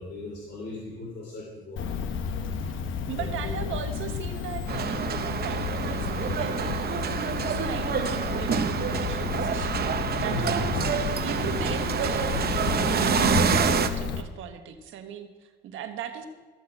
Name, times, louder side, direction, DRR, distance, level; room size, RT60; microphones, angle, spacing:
voice 1, 0.0-2.5 3.2-3.8 10.3-10.6 11.4-11.6, left 1 dB, 55° left, -2 dB, 2.8 m, -38 dB
Cricket, 1.8-14.2, left 6 dB, 75° left, 0.9 m, -31 dB
voice 2, 3.1-9.8 10.2-16.3, right 8 dB, 85° right, 7 dB, 1.3 m, -38 dB
sound 1, 4.7-13.9, right 7 dB, 50° right, 0.8 m, -27 dB
13.5 x 5.7 x 8.0 m, 1.4 s
cardioid pair, 90°, 20 cm